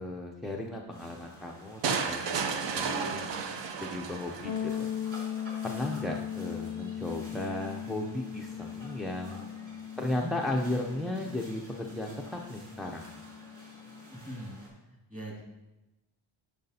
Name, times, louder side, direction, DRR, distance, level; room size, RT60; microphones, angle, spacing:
voice 1, 0.0-1.8 2.1-3.3 3.8-4.9 5.6-9.5 10.0-13.1, left 1 dB, ahead, -1 dB, 0.3 m, -35 dB
sound 1, 0.9-14.7, right 1 dB, 35° right, 2.8 m, -51 dB
sound 2, 1.8-4.8, right 5 dB, 65° right, 0.7 m, -32 dB
sound 3, 4.4-14.2, left 9 dB, 55° left, 0.5 m, -39 dB
voice 2, 9.9-10.3 14.1-14.6 15.1-15.4, right 1 dB, 15° right, -2 dB, 2.0 m, -41 dB
10.5 x 6.5 x 2.7 m, 1.0 s
wide cardioid pair, 150°, 47 cm